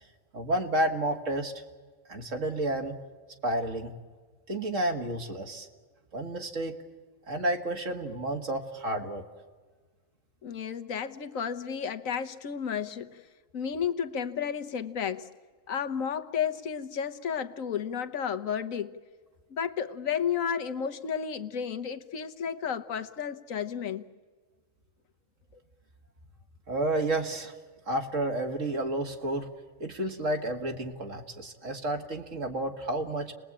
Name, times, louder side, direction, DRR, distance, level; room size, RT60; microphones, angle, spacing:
voice 1, 0.3-1.5 2.1-3.0 3.4-3.9 4.5-5.7 6.1-6.8 7.3-9.3 26.7-27.5 27.9-29.5 29.8-33.3, right 1 dB, 70° right, 3 dB, 2.2 m, -30 dB
voice 2, 10.4-13.2 13.5-15.3 15.7-18.9 19.5-24.0, left 7 dB, 90° left, 9 dB, 1.5 m, -32 dB
30.0 x 20.5 x 8.8 m, 1.5 s
omnidirectional pair, 1.4 m